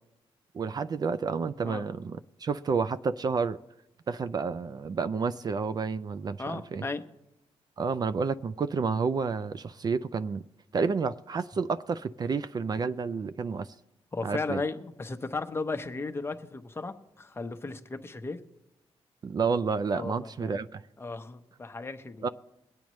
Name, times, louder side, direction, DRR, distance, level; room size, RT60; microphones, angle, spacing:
voice 1, 0.5-3.6 4.1-6.8 7.8-10.4 10.7-13.7 14.2-14.6 19.2-20.8 22.2-22.3, right 5 dB, 40° right, 0.4 m, -30 dB
voice 2, 6.4-7.0 14.1-18.4 19.9-20.6 21.0-22.3, left 3 dB, 25° left, 0.9 m, -35 dB
22.5 x 8.7 x 3.1 m
cardioid pair, 105°, 10 cm